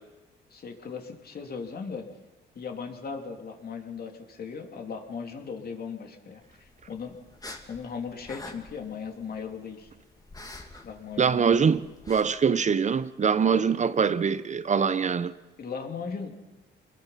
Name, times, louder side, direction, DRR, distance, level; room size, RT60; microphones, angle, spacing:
voice 1, 0.5-2.0 2.5-6.4 6.9-7.1 7.7-9.9 10.8-11.7 13.5-13.6 15.6-16.4, left 5 dB, 50° left, 3.1 m, -37 dB
sound 1, 6.4-12.2, left 2 dB, 20° left, 2.6 m, -47 dB
voice 2, 11.2-11.8 12.1-15.3, right 6 dB, 35° right, 0.8 m, -23 dB
26.5 x 21.5 x 5.8 m
cardioid pair, 90°, 20 cm